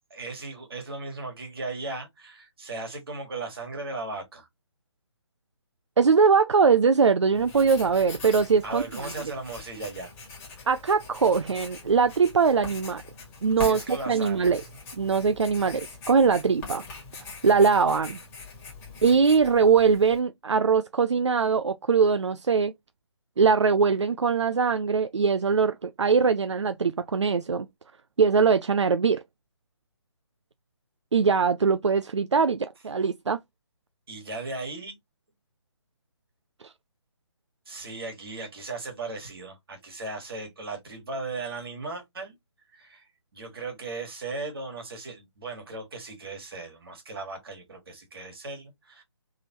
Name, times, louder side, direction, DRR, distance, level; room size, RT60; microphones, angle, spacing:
voice 1, 0.1-4.5 8.6-10.1 13.6-14.6 34.1-35.0 37.7-42.4 42.7-49.0, right 3 dB, 55° right, 1.9 m, -37 dB
voice 2, 6.0-8.8 10.7-13.0 13.4-14.6 15.0-16.8 17.4-18.2 19.0-22.7 23.4-27.7 28.2-29.2 31.1-33.4 36.6-36.7, right 5 dB, 80° right, 0.4 m, -22 dB
Writing, 7.3-20.2, left 4 dB, 15° left, 1.4 m, -42 dB
3.6 x 3.3 x 2.9 m
figure-of-eight pair, 145°, 15 cm